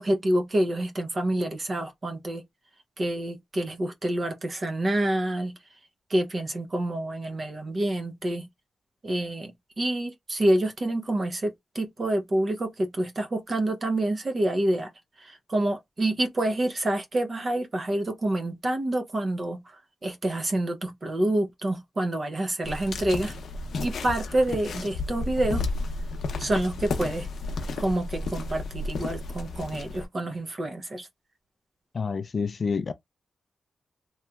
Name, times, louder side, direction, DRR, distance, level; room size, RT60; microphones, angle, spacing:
voice 1, 0.0-2.4 3.0-5.5 6.1-8.5 9.0-14.9 15.2-19.6 20.0-23.4 23.8-25.6 26.4-27.3 27.8-31.1, right 1 dB, 35° right, 0.7 m, -27 dB
sound 1, 22.6-30.1, left 2 dB, 80° left, 0.6 m, -32 dB
voice 2, 31.9-32.9, left 5 dB, 40° left, 0.3 m, -28 dB
3.1 x 2.8 x 2.3 m
wide cardioid pair, 140°, 0 cm